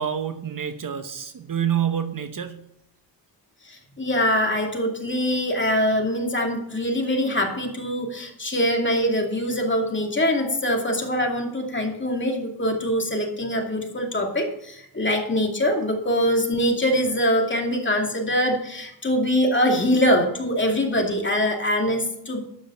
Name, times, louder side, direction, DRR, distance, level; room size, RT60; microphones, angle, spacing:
voice 1, 0.0-2.6, right 9 dB, 50° right, 8 dB, 1.1 m, -27 dB
voice 2, 3.7-22.4, equal, 25° left, 2 dB, 2.5 m, -23 dB
12.5 x 5.4 x 7.7 m, 0.75 s
cardioid pair, 90°, 42 cm